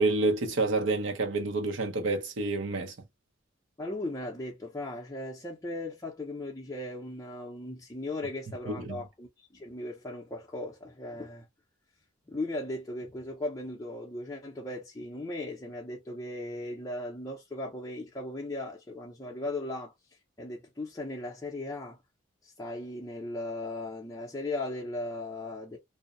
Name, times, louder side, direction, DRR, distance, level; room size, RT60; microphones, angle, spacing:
voice 1, 0.0-2.9 8.7-9.0, right 3 dB, 75° right, 0.7 m, -28 dB
voice 2, 3.8-11.5 12.3-19.9 20.4-22.0 22.4-25.8, left 2 dB, 15° left, 0.5 m, -37 dB
2.6 x 2.0 x 2.5 m
head